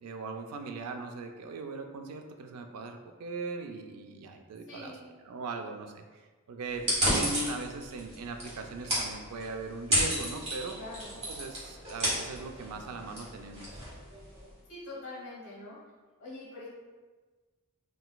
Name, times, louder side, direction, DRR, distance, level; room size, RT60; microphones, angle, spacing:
voice 1, 0.0-5.0 5.2-6.0 6.5-10.8 11.3-13.7, right 3 dB, 85° right, 5 dB, 0.4 m, -39 dB
voice 2, 4.7-5.1 10.7-11.2 14.7-15.8 16.2-16.7, left 2 dB, 60° left, -5 dB, 1.2 m, -44 dB
sound 1, 6.7-14.5, equal, 30° right, 1.2 m, -33 dB
3.8 x 2.4 x 2.3 m, 1.3 s
head